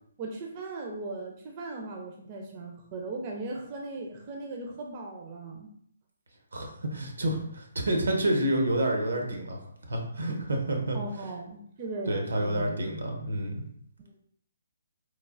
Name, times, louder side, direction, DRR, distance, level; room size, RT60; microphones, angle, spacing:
voice 1, 0.2-5.7 10.9-12.8, right 3 dB, 30° right, 0 dB, 0.4 m, -38 dB
voice 2, 6.5-11.0 12.1-13.5, right 1 dB, 80° right, 2 dB, 0.6 m, -29 dB
3.1 x 2.1 x 2.4 m, 0.67 s
hypercardioid pair, 150°, 0 cm